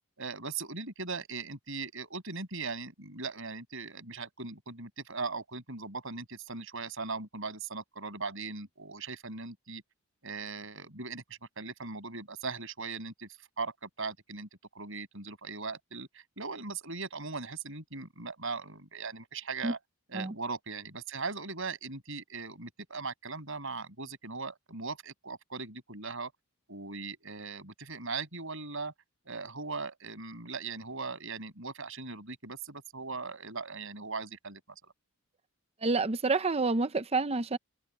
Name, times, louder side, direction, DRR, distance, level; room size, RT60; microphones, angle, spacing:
voice 1, 0.2-9.8 10.2-13.3 13.6-14.5 14.7-19.8 20.1-26.3 26.7-28.9 29.3-34.9, right 4 dB, 60° right, 7.5 m, -39 dB
voice 2, 35.8-37.6, right 3 dB, 25° right, 0.6 m, -28 dB
head